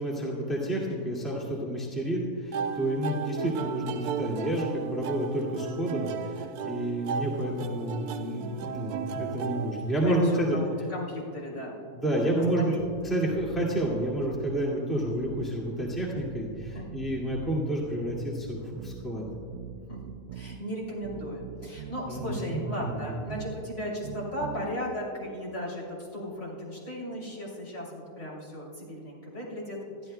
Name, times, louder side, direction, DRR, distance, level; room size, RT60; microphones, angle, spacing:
voice 1, 0.0-10.6 12.0-12.7 13.0-19.2 22.1-23.1, right 1 dB, ahead, -4 dB, 2.0 m, -30 dB
sound 1, 2.5-10.5, right 7 dB, 85° right, 1.1 m, -35 dB
voice 2, 10.1-11.8 12.1-13.1 16.7-16.8 19.9-20.0 20.3-30.1, equal, 50° left, -5 dB, 3.6 m, -36 dB
sound 2, 12.8-14.6 15.0-17.6 18.0-20.6 21.0-23.6 24.0-24.7, right 8 dB, 70° right, 0.6 m, -42 dB
21.5 x 13.0 x 2.3 m, 2.5 s
omnidirectional pair, 1.6 m